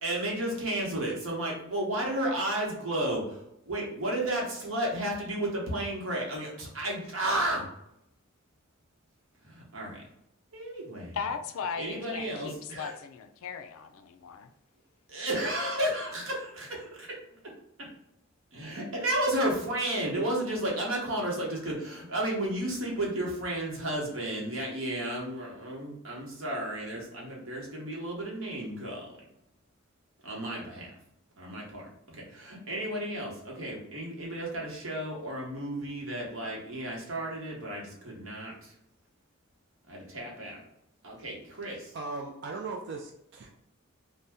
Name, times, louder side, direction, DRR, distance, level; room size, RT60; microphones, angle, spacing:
voice 1, 0.0-7.7 9.4-10.0 10.5-11.2 11.8-12.9 15.1-16.9 18.5-29.1 30.2-30.9 31.4-38.7 39.9-40.6 41.0-41.9, right 1 dB, 75° right, -3 dB, 1.0 m, -33 dB
voice 2, 11.1-14.5, left 6 dB, 85° left, 7 dB, 0.3 m, -37 dB
voice 3, 41.9-43.5, right 3 dB, 55° right, 1 dB, 0.3 m, -38 dB
2.7 x 2.1 x 3.4 m, 0.78 s
head